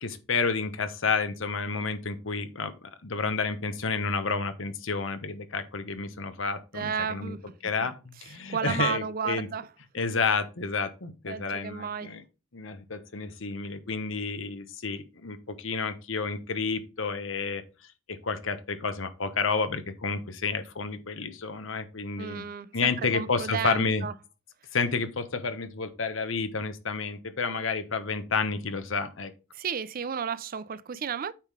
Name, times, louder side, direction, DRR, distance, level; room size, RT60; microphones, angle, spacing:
voice 1, 0.0-7.4 7.6-9.5 9.9-12.2 12.5-17.6 18.1-22.4 22.7-24.1 24.7-29.3, left 4 dB, 70° left, 1.1 m, -30 dB
voice 2, 6.7-7.4 8.5-9.7 11.3-12.1 22.2-24.1 29.5-31.3, right 7 dB, 45° right, 0.4 m, -32 dB
8.8 x 3.8 x 4.9 m
head